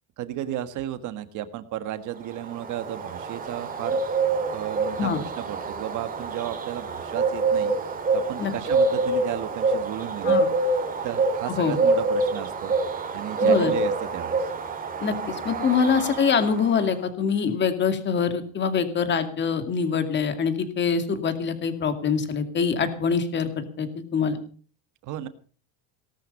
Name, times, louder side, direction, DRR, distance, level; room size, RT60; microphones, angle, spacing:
voice 1, 0.2-4.0 4.5-7.7 8.1-10.4 11.0-12.7 13.1-14.5 25.0-25.3, right 12 dB, 50° right, 11 dB, 1.6 m, -33 dB
Bird, 2.2-16.9, right 3 dB, 20° right, 2.7 m, -26 dB
voice 2, 13.4-13.7 15.0-24.4, left 6 dB, 25° left, 9 dB, 2.2 m, -24 dB
18.0 x 13.0 x 5.3 m, 0.41 s
cardioid pair, 165°, 40 cm